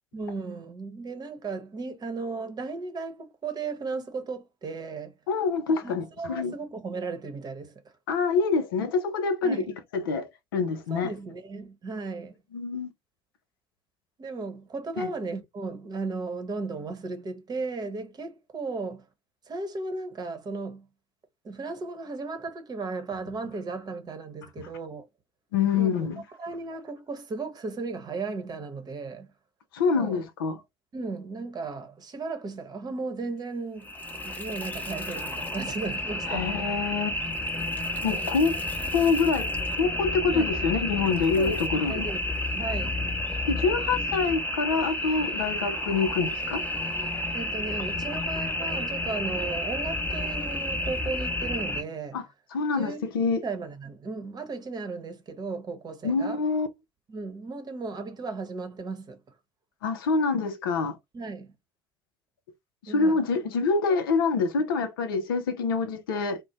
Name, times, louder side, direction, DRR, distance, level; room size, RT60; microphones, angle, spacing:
voice 1, 0.1-5.1 5.8-7.9 9.4-9.7 10.9-12.4 14.2-19.1 19.5-20.9 21.4-25.1 25.8-26.1 26.4-29.3 29.8-30.2 30.9-33.9 34.2-36.7 40.3-40.5 41.4-42.2 42.5-43.0 47.3-52.2 52.7-53.0 53.4-56.4 57.1-59.2 61.1-61.5 62.9-63.2, right 3 dB, 35° right, 0.9 m, -35 dB
voice 2, 5.3-6.5 8.1-9.6 9.9-11.1 12.5-12.9 15.0-15.1 25.5-26.2 29.7-30.6 36.3-37.2 38.0-38.6 38.9-39.5 39.8-42.1 43.5-46.6 52.1-52.2 52.5-53.4 56.0-56.7 59.8-61.0 62.9-66.4, left 4 dB, 75° left, 0.5 m, -26 dB
sound 1, 33.8-51.8, left 1 dB, 15° left, 0.8 m, -31 dB
2.5 x 2.1 x 2.8 m
figure-of-eight pair, 55°, 12 cm